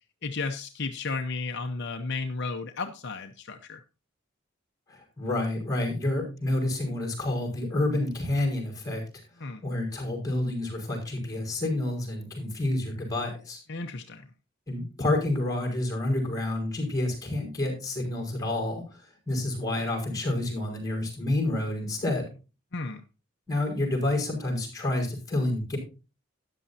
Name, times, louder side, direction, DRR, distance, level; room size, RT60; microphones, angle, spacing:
voice 1, 0.2-3.8 9.4-9.6 13.7-14.3 22.7-23.0, left 3 dB, 60° left, 5 dB, 0.9 m, -33 dB
voice 2, 4.9-9.0 9.6-13.6 14.7-18.8 19.3-22.2 23.5-25.8, left 1 dB, 15° left, 1 dB, 5.4 m, -29 dB
13.5 x 10.0 x 2.8 m, 0.31 s
head